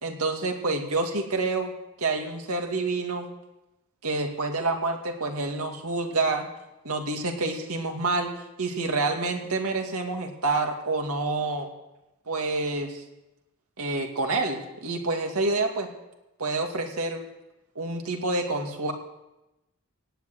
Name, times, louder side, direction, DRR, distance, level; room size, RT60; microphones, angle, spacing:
voice 1, 0.0-3.3 4.0-6.5 6.8-8.3 8.6-11.7 12.3-13.0 13.8-15.9 16.4-17.2 17.8-18.9, right 3 dB, 85° right, 3 dB, 2.2 m, -28 dB
17.5 x 6.5 x 9.6 m, 0.95 s
head